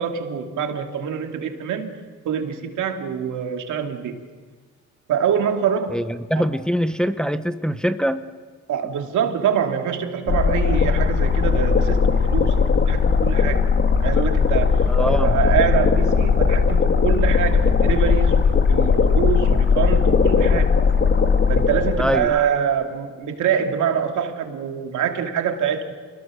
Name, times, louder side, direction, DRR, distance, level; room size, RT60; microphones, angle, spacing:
voice 1, 0.0-1.9 2.2-4.2 5.1-6.0 6.3-6.5 8.7-13.7 14.0-20.7 21.5-25.9, right 8 dB, 75° right, 4 dB, 2.6 m, -25 dB
voice 2, 5.9-8.2 14.9-15.3 22.0-22.3, equal, 5° left, 10 dB, 0.9 m, -23 dB
sound 1, 10.3-22.2, left 5 dB, 40° left, 2.9 m, -18 dB
28.0 x 20.5 x 6.4 m, 1.5 s
cardioid pair, 90°, 30 cm